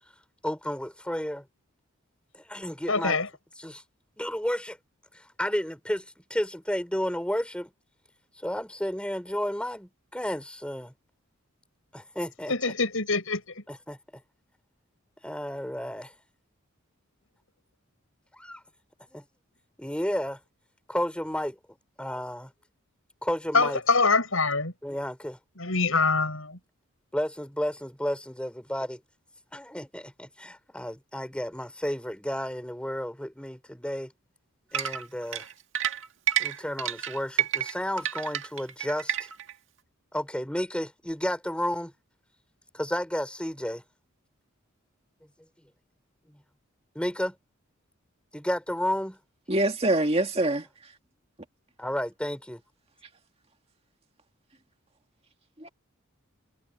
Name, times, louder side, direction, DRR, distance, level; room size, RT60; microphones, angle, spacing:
voice 1, 0.4-1.4 2.3-3.2 3.6-3.8 4.2-4.8 5.1-7.7 8.4-10.9 11.9-12.5 13.7-14.2 15.2-16.1 18.4-18.6 19.1-19.2 19.8-20.4 20.9-21.6 22.0-22.5 23.2-23.8 24.8-25.4 27.1-29.0 29.5-34.1 34.7-35.5 36.4-39.3 40.1-41.9 42.7-43.8 46.3-46.4 47.0-47.4 48.3-49.2 51.8-52.6, equal, 5° left, 3.7 m, -32 dB
voice 2, 2.9-3.3 12.5-13.6 23.5-24.7 25.6-26.6, left 4 dB, 75° left, 7.0 m, -24 dB
sound 1, 34.7-39.5, right 10 dB, 60° right, 1.9 m, -29 dB
voice 3, 49.5-50.9 55.6-55.7, right 1 dB, 30° right, 2.1 m, -25 dB
head